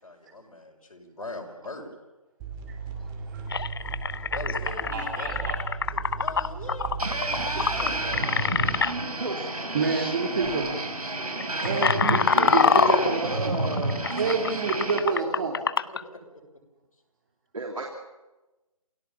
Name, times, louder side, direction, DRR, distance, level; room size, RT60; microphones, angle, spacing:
voice 1, 0.0-1.9 4.2-9.0 14.1-14.8 15.3-15.4 15.9-16.2, left 2 dB, 70° left, 2 dB, 6.4 m, -42 dB
sound 1, 2.4-9.0, right 5 dB, 15° right, 2.3 m, -37 dB
voice 2, 2.7-3.7 4.0-4.1 4.9-5.6 9.7-10.7 11.6-13.6 14.2-15.6, right 4 dB, 35° right, 1 dB, 2.9 m, -29 dB
sound 2, 2.9-3.0 3.5-8.9 9.9-10.1 10.4-10.7 11.2-16.0, left 5 dB, 40° left, 0.7 m, -25 dB
sound 3, 7.0-15.0, right 2 dB, 80° right, 5.9 m, -30 dB
voice 3, 9.2-9.8 12.1-14.0 17.5-17.9, right 2 dB, 65° right, 2 dB, 3.2 m, -32 dB
28.0 x 17.5 x 7.3 m, 1.1 s
figure-of-eight pair, 155°, 19 cm